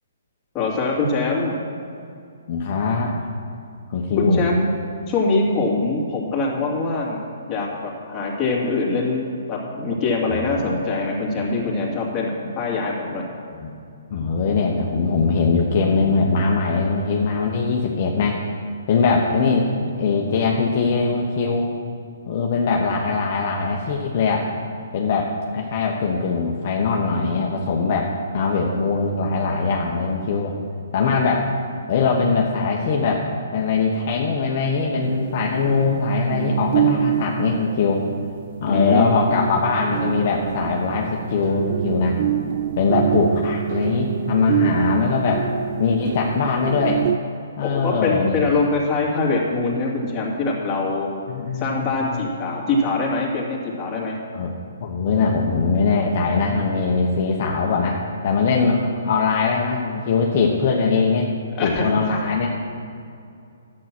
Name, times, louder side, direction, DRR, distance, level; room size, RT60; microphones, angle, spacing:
voice 1, 0.5-1.5 4.2-4.7 5.1-13.3 19.8-19.9 38.6-39.1 47.6-51.1 51.5-54.2 61.5-62.1, left 3 dB, 20° left, -3 dB, 2.5 m, -23 dB
voice 2, 2.5-3.1 3.9-4.5 10.3-10.7 13.6-13.7 14.1-18.4 18.9-19.7 20.0-21.7 22.3-24.5 24.9-30.5 30.9-31.5 31.9-38.0 38.6-42.2 42.8-45.5 45.8-47.0 47.6-48.5 51.3-52.2 54.3-54.5 54.8-61.3 61.6-62.5, left 4 dB, 45° left, -1 dB, 1.2 m, -21 dB
sound 1, 35.0-47.2, right 10 dB, 45° right, 0.3 m, -26 dB
11.0 x 8.7 x 6.1 m, 2.5 s
hypercardioid pair, 150°, 0 cm